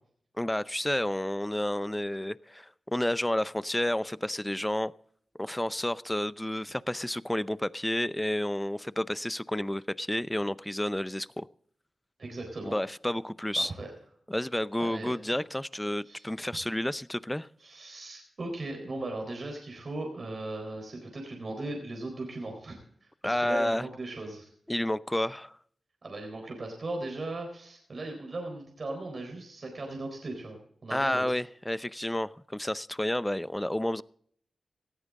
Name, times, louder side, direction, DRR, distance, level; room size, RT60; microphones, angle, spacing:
voice 1, 0.4-4.9 5.4-11.5 12.6-13.7 14.3-17.5 23.2-23.9 24.7-25.6 30.9-34.0, left 1 dB, 10° left, 17 dB, 0.6 m, -30 dB
voice 2, 12.2-12.8 13.5-13.9 14.8-15.4 16.0-16.3 17.6-24.5 26.0-31.4, right 2 dB, 60° right, 3 dB, 4.1 m, -38 dB
18.5 x 14.0 x 3.7 m, 0.62 s
cardioid pair, 50°, 0 cm